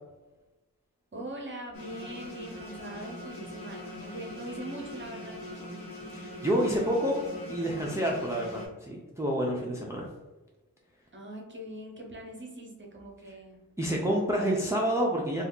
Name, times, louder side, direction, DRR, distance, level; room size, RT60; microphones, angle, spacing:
voice 1, 1.1-5.7 11.1-13.6, right 1 dB, 35° right, 0 dB, 0.8 m, -42 dB
sound 1, 1.7-8.7, left 1 dB, 85° left, 1.2 m, -42 dB
voice 2, 6.1-7.2 7.4-10.1 13.8-15.4, equal, 10° right, -3 dB, 0.4 m, -28 dB
2.7 x 2.4 x 3.5 m, 1.1 s
wide cardioid pair, 80°, 34 cm